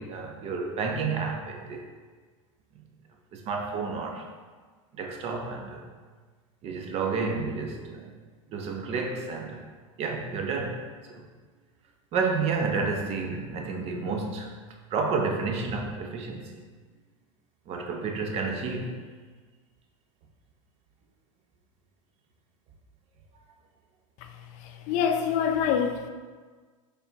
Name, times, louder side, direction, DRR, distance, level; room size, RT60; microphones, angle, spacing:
voice 1, 0.0-1.9 3.3-4.3 4.9-5.9 6.6-8.1 8.5-9.6 10.0-11.2 12.1-14.6 14.9-16.6 17.7-18.9, right 4 dB, 35° right, 2 dB, 0.6 m, -30 dB
voice 2, 24.2-26.1, left 7 dB, 45° left, 6 dB, 0.4 m, -27 dB
4.2 x 3.4 x 2.8 m, 1.5 s
hypercardioid pair, 110°, 17 cm